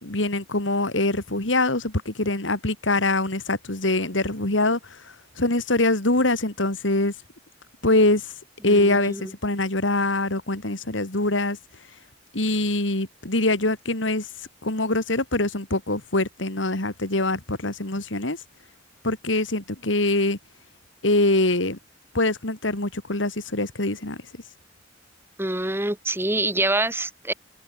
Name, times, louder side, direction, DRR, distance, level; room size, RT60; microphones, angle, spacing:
voice 1, 0.0-4.8 5.4-7.1 7.8-8.3 8.6-11.6 12.3-14.3 14.6-18.4 19.0-20.4 21.0-21.8 22.1-24.2, left 2 dB, 85° left, 3.6 m, -23 dB
voice 2, 8.6-9.2 25.4-27.3, right 2 dB, 10° right, 3.1 m, -26 dB
head